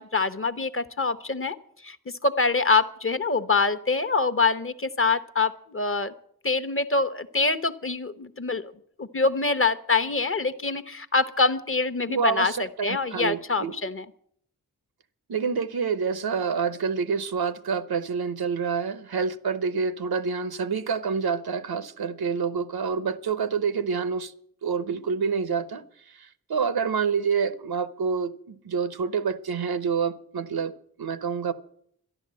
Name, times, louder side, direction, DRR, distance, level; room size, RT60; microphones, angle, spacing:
voice 1, 0.0-1.6 1.8-2.0 2.2-6.1 6.4-8.7 9.0-14.0, left 3 dB, 35° left, 0.9 m, -25 dB
voice 2, 12.1-12.6 12.9-13.7 15.3-24.3 24.6-25.8 26.2-31.5, right 5 dB, 85° right, 0.8 m, -27 dB
12.0 x 11.0 x 7.5 m
wide cardioid pair, 60°, 36 cm